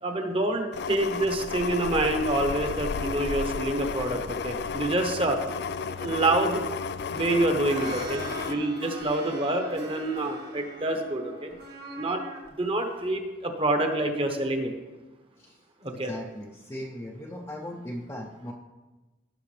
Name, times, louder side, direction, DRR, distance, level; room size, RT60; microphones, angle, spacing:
voice 1, 0.0-5.4 5.9-6.7 7.1-11.5 12.0-12.2 12.6-14.7 15.8-16.1, right 2 dB, 30° right, 5 dB, 1.0 m, -27 dB
sound 1, 0.7-8.5, left 5 dB, 60° left, 0.4 m, -33 dB
sound 2, 7.2-12.5 13.0-13.1, right 2 dB, 55° right, 1.9 m, -41 dB
voice 2, 16.1-18.5, left 1 dB, 15° left, -2 dB, 0.6 m, -38 dB
16.5 x 6.3 x 3.3 m, 1.2 s
head